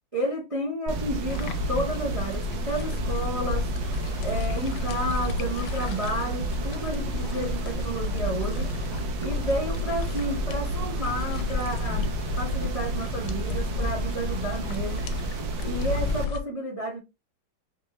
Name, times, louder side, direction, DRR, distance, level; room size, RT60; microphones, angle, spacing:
voice 1, 0.1-3.7 4.2-8.7 9.2-12.1 12.4-15.0 15.6-17.0, right 1 dB, 35° right, 0.5 m, -31 dB
sound 1, 0.9-16.2, right 2 dB, 75° right, 1.3 m, -31 dB
sound 2, 1.3-16.4, left 5 dB, 80° left, 1.4 m, -33 dB
Bowed string instrument, 9.5-13.6, right 1 dB, 60° left, 1.4 m, -52 dB
5.1 x 2.1 x 2.9 m
omnidirectional pair, 2.2 m